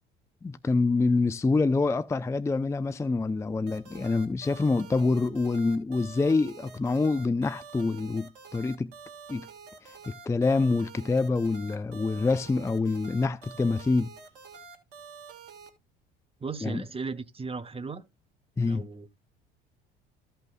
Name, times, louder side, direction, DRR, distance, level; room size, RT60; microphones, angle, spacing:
voice 1, 0.4-8.9 9.3-9.5 9.8-14.1 16.6-16.8 18.6-18.9, left 3 dB, 10° left, 0.5 m, -26 dB
sound 1, 3.7-15.7, right 5 dB, 70° right, 2.3 m, -47 dB
voice 2, 16.4-18.0 18.6-19.2, right 4 dB, 20° right, 1.2 m, -36 dB
15.0 x 5.7 x 2.4 m
figure-of-eight pair, 60°, 30 cm